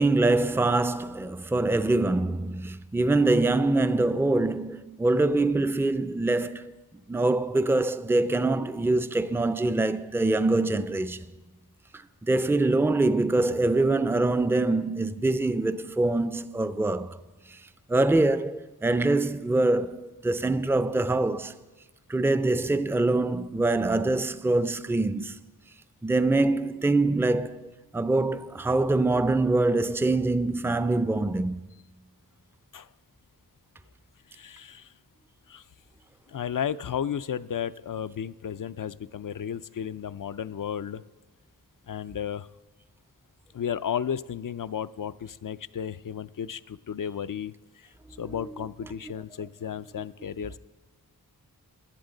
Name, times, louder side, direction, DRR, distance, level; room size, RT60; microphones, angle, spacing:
voice 1, 0.0-6.7 7.1-11.2 12.2-17.2 17.9-21.5 22.1-25.4 26.0-31.6 48.3-48.4, right 2 dB, 5° right, 0.5 m, -24 dB
voice 2, 34.3-34.9 35.5-35.6 36.3-41.0 41.9-42.5 43.5-47.9 48.2-50.6, left 8 dB, 55° left, 0.5 m, -33 dB
18.5 x 11.0 x 3.9 m
wide cardioid pair, 40°, 38 cm